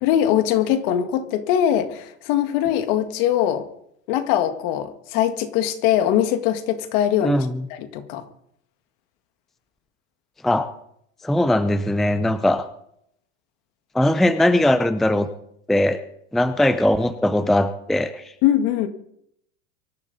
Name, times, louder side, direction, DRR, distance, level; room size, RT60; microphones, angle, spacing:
voice 1, 0.0-3.6 4.1-8.2 18.4-18.9, left 11 dB, 60° left, 8 dB, 1.9 m, -21 dB
voice 2, 7.2-7.7 10.4-10.7 11.2-12.7 13.9-15.3 15.7-16.0 16.3-18.3, left 1 dB, ahead, 10 dB, 0.5 m, -20 dB
24.0 x 12.0 x 4.1 m, 0.74 s
supercardioid pair, 140°, 33 cm